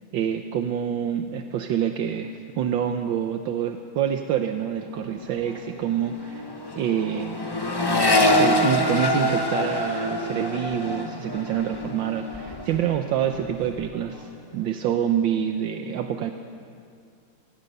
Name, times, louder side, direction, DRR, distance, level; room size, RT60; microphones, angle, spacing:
voice 1, 0.1-6.5 6.7-7.4 8.2-16.3, right 9 dB, 75° right, 6 dB, 1.6 m, -27 dB
Accelerating revving vroom, 5.0-5.2 5.5-13.0 13.3-13.9, left 1 dB, 15° left, 1.0 m, -25 dB
28.5 x 17.5 x 6.7 m, 2.4 s
omnidirectional pair, 2.1 m